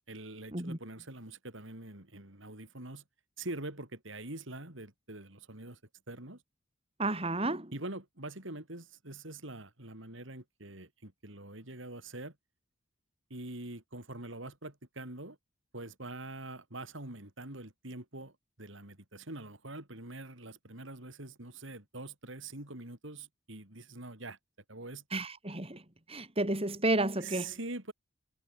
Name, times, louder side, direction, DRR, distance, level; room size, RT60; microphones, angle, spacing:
voice 1, 0.1-3.0 3.4-5.8 6.1-6.4 7.7-12.3 13.3-15.4 15.7-24.4 24.7-25.0 27.2-27.9, right 2 dB, 65° right, 4.4 m, -44 dB
voice 2, 7.0-7.7 25.1-25.8 26.1-27.6, right 2 dB, 30° right, 3.6 m, -31 dB
head